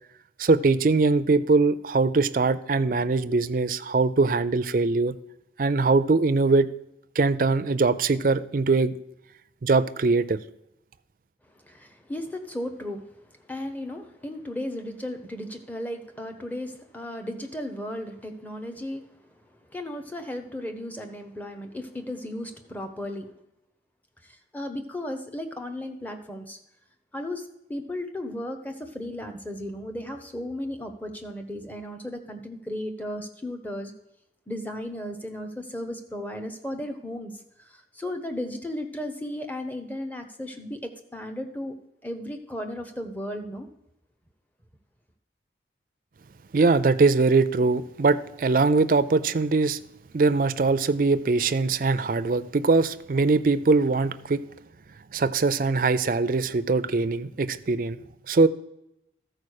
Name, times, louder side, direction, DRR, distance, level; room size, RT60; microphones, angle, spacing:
voice 1, 0.4-5.1 5.6-6.7 7.2-8.9 9.6-10.4 46.5-49.8 50.1-54.4 55.1-58.0 58.3-58.5, right 3 dB, 50° right, 0.4 m, -22 dB
voice 2, 11.5-13.0 13.5-19.3 19.7-23.3 24.2-26.6 27.1-33.9 34.5-41.8 42.0-43.7, left 1 dB, 10° left, 0.8 m, -35 dB
13.5 x 4.6 x 6.4 m
head